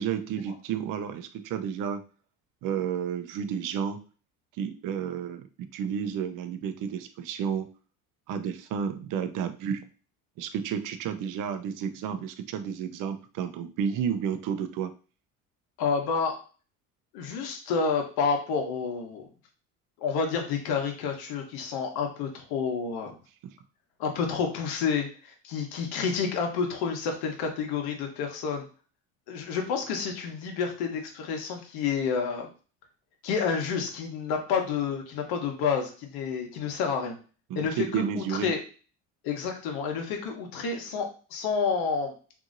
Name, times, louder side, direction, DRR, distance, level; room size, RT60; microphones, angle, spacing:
voice 1, 0.0-2.0 2.6-4.0 4.6-7.7 8.3-9.8 10.4-14.9 23.4-23.6 37.5-38.5, right 8 dB, 55° right, 9 dB, 0.6 m, -31 dB
voice 2, 15.8-16.4 17.1-19.3 20.0-23.1 24.0-28.7 29.3-32.5 33.2-37.2 37.5-38.6 39.2-42.1, left 5 dB, 70° left, 3 dB, 1.0 m, -29 dB
2.9 x 2.6 x 2.5 m, 0.37 s
supercardioid pair, 80°, 39 cm